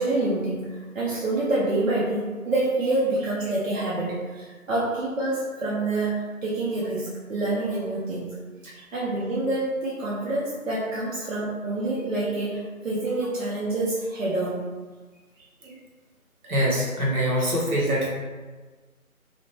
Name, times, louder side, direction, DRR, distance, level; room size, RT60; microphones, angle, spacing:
voice 1, 0.0-8.3 8.7-14.6 15.4-15.7, right 2 dB, 60° right, -7 dB, 0.8 m, -27 dB
voice 2, 16.4-18.1, equal, 80° right, -3 dB, 1.1 m, -24 dB
2.8 x 2.4 x 3.0 m, 1.3 s
figure-of-eight pair, 165°, 43 cm